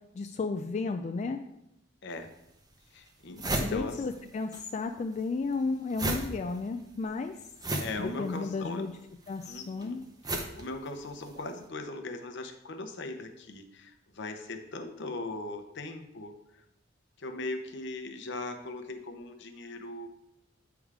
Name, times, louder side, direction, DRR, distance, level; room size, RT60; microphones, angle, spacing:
voice 1, 0.1-1.4 3.6-7.4 8.0-8.9 9.3-10.0, left 4 dB, 35° left, 5 dB, 0.3 m, -33 dB
voice 2, 2.0-2.3 2.9-4.0 7.8-8.9 9.5-10.1 10.3-16.6 17.2-20.1, left 2 dB, 65° left, 6 dB, 0.8 m, -39 dB
sound 1, 2.1-2.2 2.8-2.9 3.1-4.6 4.9-11.4, right 1 dB, 20° right, 0.8 m, -35 dB
8.6 x 3.5 x 4.8 m, 0.85 s
head